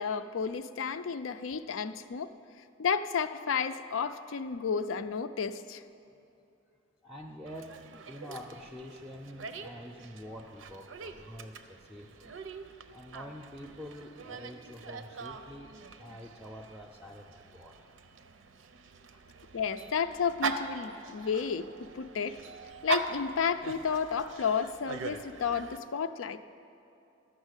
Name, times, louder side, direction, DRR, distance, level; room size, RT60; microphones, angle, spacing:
voice 1, 0.0-2.3 2.8-5.8 19.5-22.4 22.8-26.4, left 6 dB, 85° left, 11 dB, 0.5 m, -32 dB
voice 2, 7.0-7.7 8.1-12.3 12.9-17.8 19.1-19.3 22.2-22.3, equal, 5° right, 0 dB, 0.5 m, -46 dB
Dog, 7.5-25.8, right 4 dB, 80° right, 0.6 m, -42 dB
12.5 x 6.2 x 8.1 m, 2.7 s
head